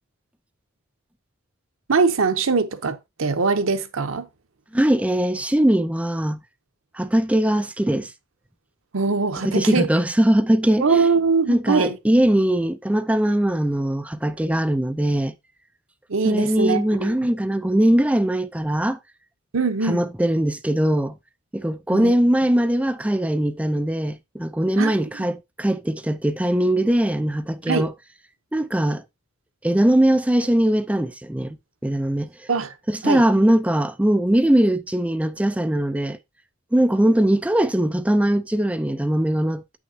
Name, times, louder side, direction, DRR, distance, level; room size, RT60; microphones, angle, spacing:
voice 1, 1.9-4.3 8.9-9.9 10.8-12.0 16.1-17.1 19.5-20.0 21.9-22.1 24.8-25.0 27.7-27.9 32.5-32.7 33.0-33.2, right 4 dB, 85° right, 0.8 m, -22 dB
voice 2, 4.7-6.4 6.9-8.1 9.4-11.1 11.5-15.3 16.2-19.0 19.8-21.2 21.5-27.9 28.5-29.0 29.6-32.3 32.9-36.2 36.7-39.8, right 1 dB, 5° right, 0.4 m, -21 dB
8.4 x 6.2 x 2.7 m
head